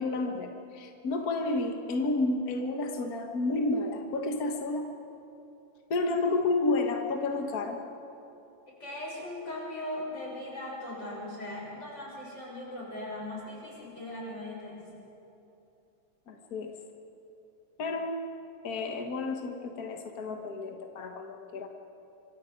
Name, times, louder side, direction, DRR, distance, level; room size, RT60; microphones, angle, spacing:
voice 1, 0.0-4.9 5.9-7.8 16.3-16.7 17.8-18.2 18.6-21.7, left 2 dB, 60° left, 3 dB, 0.9 m, -31 dB
voice 2, 8.8-14.9, left 1 dB, 30° left, -4 dB, 7.0 m, -39 dB
26.5 x 24.5 x 5.2 m, 2.9 s
omnidirectional pair, 3.8 m